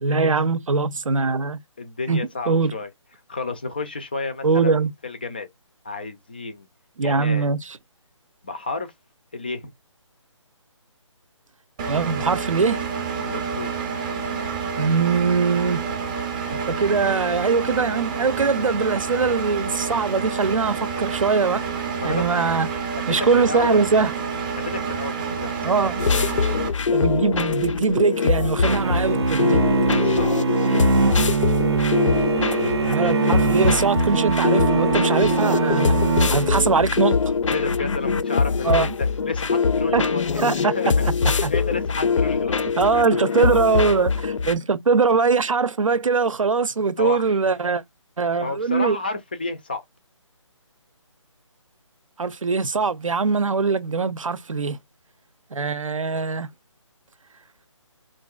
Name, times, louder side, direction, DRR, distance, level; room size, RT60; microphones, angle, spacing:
voice 1, 0.0-1.6 2.1-2.7 4.4-4.9 7.0-7.8 11.9-12.8 14.8-15.8 16.5-21.6 22.0-22.7 23.1-24.1 25.6-26.0 26.9-29.6 32.9-36.0 36.3-37.2 38.6-38.9 39.9-40.1 40.4-40.8 41.4-41.5 42.8-47.8 48.2-49.0 52.2-54.8 55.5-56.5, right 4 dB, 90° right, 0.7 m, -22 dB
voice 2, 1.8-2.9 3.3-5.5 5.8-6.7 7.0-7.5 8.4-8.9 9.3-9.7 13.2-13.7 22.0-22.5 23.0-23.9 24.6-25.7 28.8-29.0 29.9-30.3 37.5-42.7 43.6-43.7 47.0-47.4 48.4-49.8, left 3 dB, 20° left, 0.4 m, -31 dB
Engine, 11.8-26.7, right 6 dB, 15° right, 0.6 m, -29 dB
sound 1, 26.0-44.5, left 5 dB, 75° left, 0.5 m, -23 dB
sound 2, 28.6-37.0, right 5 dB, 55° right, 0.6 m, -22 dB
4.5 x 2.5 x 2.3 m
hypercardioid pair, 165°, 16 cm